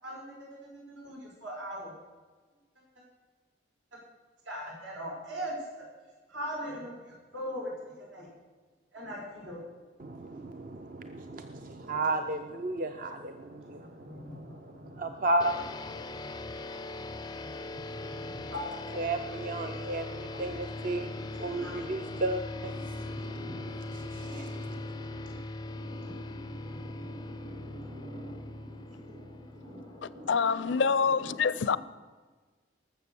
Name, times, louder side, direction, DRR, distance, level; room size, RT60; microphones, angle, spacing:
voice 1, 0.0-0.6 0.9-1.9 4.5-5.8 6.3-8.3 8.9-9.6 13.6-15.3 16.4-16.5 17.3-19.0 19.6-19.7 20.4-20.5 20.8-22.2 22.7-23.9 24.3-24.4 24.6-24.8 25.2-31.8, equal, 85° right, 5.6 m, -43 dB
voice 2, 10.0-15.6 18.9-25.4, right 2 dB, 45° right, 0.5 m, -34 dB
sound 1, 15.4-30.2, left 2 dB, 20° left, 0.4 m, -40 dB
voice 3, 30.3-31.8, left 5 dB, 75° left, 0.5 m, -26 dB
19.0 x 7.2 x 7.0 m
head